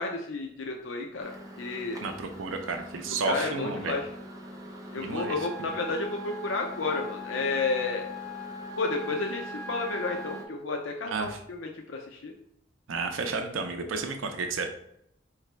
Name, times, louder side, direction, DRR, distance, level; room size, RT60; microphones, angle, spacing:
voice 1, 0.0-1.3 1.6-2.0 3.2-4.1 4.9-8.1 8.8-12.3, left 3 dB, 70° left, 2 dB, 0.5 m, -31 dB
Microwave oven, 1.2-10.4, equal, 20° right, 0.7 m, -44 dB
voice 2, 2.0-4.0 5.0-5.5 11.1-11.4 12.9-14.7, right 4 dB, 80° right, 5 dB, 0.5 m, -32 dB
Wind instrument woodwind instrument, 5.1-10.5, left 1 dB, 10° left, 0.3 m, -41 dB
4.8 x 3.2 x 3.2 m, 0.76 s
head